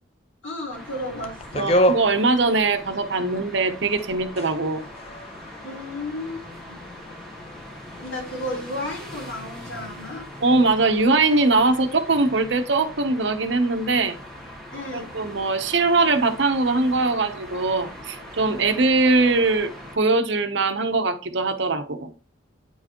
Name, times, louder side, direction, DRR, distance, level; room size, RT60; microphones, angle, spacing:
voice 1, 0.4-1.8 5.6-6.8 8.0-10.2 14.7-15.1, left 1 dB, 85° left, -3 dB, 3.5 m, -33 dB
sound 1, 0.7-20.0, equal, ahead, 1.6 m, -41 dB
sound 2, 1.2-3.4 3.7-11.5, equal, 30° left, 0.5 m, -31 dB
voice 2, 1.5-4.8 10.4-14.2 14.9-22.1, right 3 dB, 65° right, 9 dB, 0.8 m, -21 dB
9.0 x 4.6 x 2.9 m, 0.35 s
head